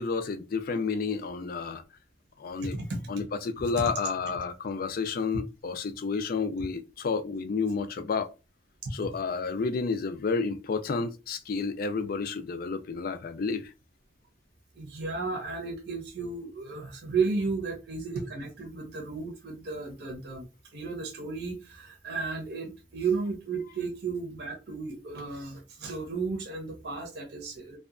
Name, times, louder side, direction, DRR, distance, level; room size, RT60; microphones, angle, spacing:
voice 1, 0.0-1.8 2.4-2.7 3.1-8.3 8.9-13.7, left 4 dB, 55° left, 0.4 m, -30 dB
voice 2, 2.6-3.1 3.6-3.9 14.8-20.5 20.7-27.8, right 4 dB, 65° right, 0.7 m, -33 dB
2.7 x 2.2 x 2.4 m
head